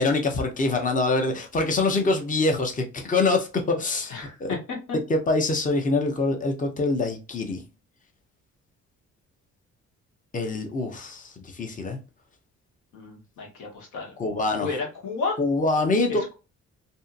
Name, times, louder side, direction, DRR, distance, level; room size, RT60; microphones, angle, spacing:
voice 1, 0.0-4.1 4.4-4.5 5.1-7.6 10.3-12.0 14.2-14.7 15.4-16.2, left 3 dB, 25° left, 0.7 m, -24 dB
voice 2, 4.1-4.8 12.9-14.1 14.6-15.4 16.1-16.3, left 4 dB, 80° left, 1.2 m, -32 dB
2.7 x 2.6 x 2.4 m
cardioid pair, 90°, 30 cm